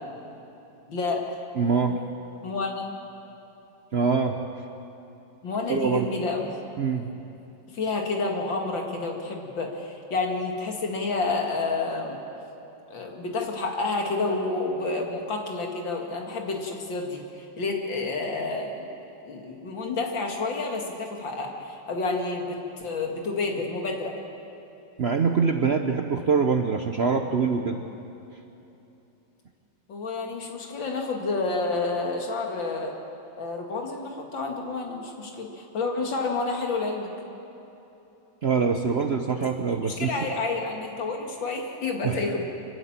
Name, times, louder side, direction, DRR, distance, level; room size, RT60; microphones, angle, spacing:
voice 1, 0.9-1.4 2.4-2.8 5.4-6.5 7.7-12.2 12.9-18.9 19.3-24.2 29.9-33.0 33.4-37.1 39.8-42.4, left 3 dB, 80° left, 1 dB, 2.9 m, -29 dB
voice 2, 1.6-2.0 3.9-4.4 5.7-6.1 6.8-7.1 25.0-27.8 38.4-40.2 42.0-42.2, right 5 dB, 50° right, 5 dB, 0.8 m, -24 dB
25.0 x 12.5 x 8.8 m, 2.9 s
omnidirectional pair, 2.0 m